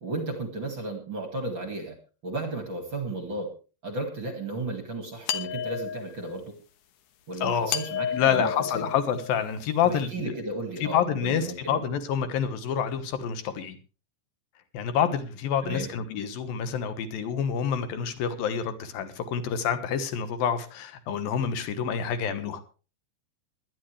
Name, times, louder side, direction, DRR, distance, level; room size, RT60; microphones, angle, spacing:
voice 1, 0.0-2.0 2.2-3.5 3.8-6.5 7.3-8.8 9.8-11.8 15.6-15.9, right 2 dB, 45° right, 5 dB, 1.6 m, -34 dB
sound 1, 5.3-6.4 7.7-9.6, left 8 dB, 85° left, 1.8 m, -32 dB
voice 2, 7.4-7.8 8.1-10.3 10.8-13.8 14.7-22.6, left 8 dB, 65° left, 11 dB, 2.5 m, -28 dB
20.5 x 11.5 x 3.3 m, 0.35 s
omnidirectional pair, 5.5 m